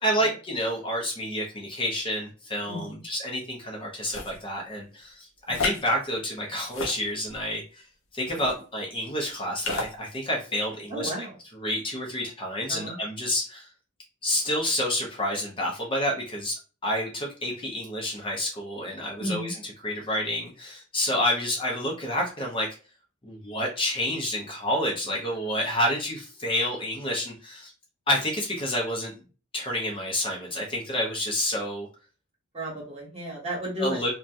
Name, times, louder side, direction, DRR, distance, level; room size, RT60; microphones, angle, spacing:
voice 1, 0.0-7.8 8.1-11.3 11.5-13.7 14.2-16.5 16.8-22.7 23.2-27.7 28.1-29.1 29.5-31.9 33.8-34.1, equal, 25° left, -2 dB, 0.7 m, -29 dB
voice 2, 2.7-3.0 5.5-5.6 10.9-11.4 12.7-13.0 19.2-19.5 32.5-34.1, equal, 30° right, -4 dB, 1.2 m, -33 dB
sound 1, 4.0-4.4 5.5-5.8 6.6-7.4 8.3-8.5 9.6-9.9, left 4 dB, 60° left, 0.6 m, -31 dB
2.9 x 2.2 x 2.5 m, 0.35 s
head